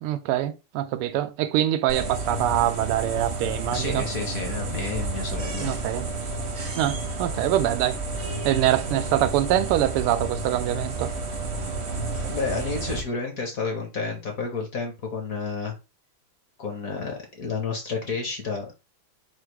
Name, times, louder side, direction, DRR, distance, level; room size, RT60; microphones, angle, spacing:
voice 1, 0.0-4.0 5.6-6.1 6.8-8.0 8.4-11.1, right 13 dB, 90° right, 1.5 m, -24 dB
sound 1, 1.9-13.0, right 3 dB, 50° right, 0.8 m, -31 dB
voice 2, 3.7-5.8 12.1-15.7 16.6-18.7, left 4 dB, 50° left, 1.2 m, -30 dB
4.9 x 2.3 x 4.6 m
omnidirectional pair, 2.4 m